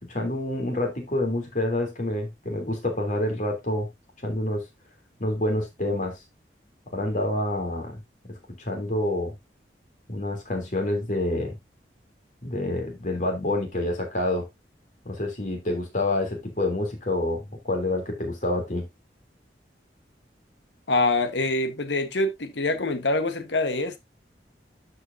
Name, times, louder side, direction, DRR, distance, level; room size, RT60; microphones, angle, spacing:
voice 1, 0.0-3.9 4.2-4.6 5.2-6.2 6.9-8.0 8.6-9.3 10.1-11.6 12.4-14.4 15.0-18.9, left 1 dB, 45° left, 3.0 m, -27 dB
voice 2, 20.9-24.0, left 2 dB, 80° left, 1.3 m, -25 dB
12.5 x 5.3 x 2.6 m
head